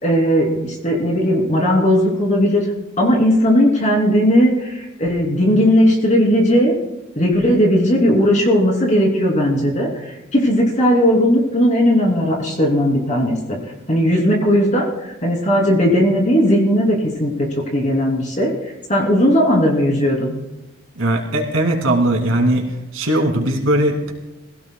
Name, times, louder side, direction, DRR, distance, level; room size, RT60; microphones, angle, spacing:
voice 1, 0.0-2.6 3.0-6.7 7.1-13.6 13.9-14.9 15.2-17.5 17.7-18.5 18.9-20.3, equal, 35° left, -1 dB, 3.1 m, -16 dB
voice 2, 21.0-22.6 22.9-24.1, right 1 dB, 80° right, 1 dB, 2.6 m, -18 dB
23.0 x 16.5 x 2.3 m, 0.98 s
head